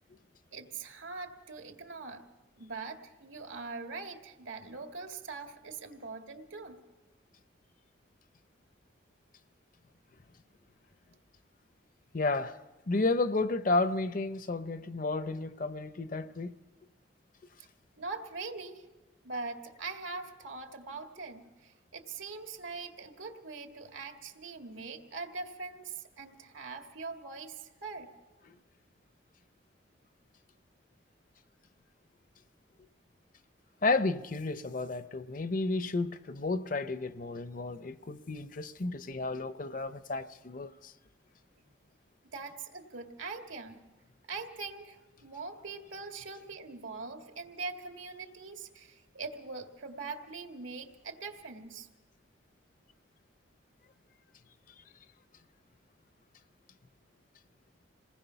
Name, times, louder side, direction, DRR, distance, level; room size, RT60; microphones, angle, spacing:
voice 1, 0.5-2.2 2.5-6.8 17.6-17.7 18.0-18.9 19.2-28.1 41.6-41.7 42.3-43.8 44.3-51.9, right 4 dB, 85° right, 2.0 m, -42 dB
voice 2, 12.1-12.6 12.9-16.6 28.5-28.6 33.8-40.9, left 3 dB, 45° left, 0.6 m, -32 dB
27.0 x 19.0 x 5.7 m
head